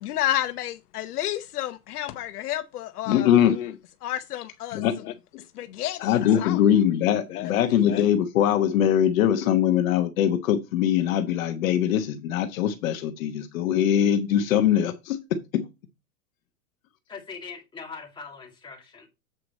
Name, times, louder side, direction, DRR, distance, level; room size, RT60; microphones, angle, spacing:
voice 1, 0.0-3.8 4.0-5.1 5.5-7.5 7.8-8.0, left 13 dB, 75° left, 0.8 m, -31 dB
voice 2, 3.1-3.6 4.7-5.0 6.0-15.6, left 10 dB, 60° left, 1.1 m, -22 dB
voice 3, 17.1-19.1, left 5 dB, 10° left, 2.2 m, -41 dB
7.8 x 4.7 x 4.3 m
hypercardioid pair, 135°, 46 cm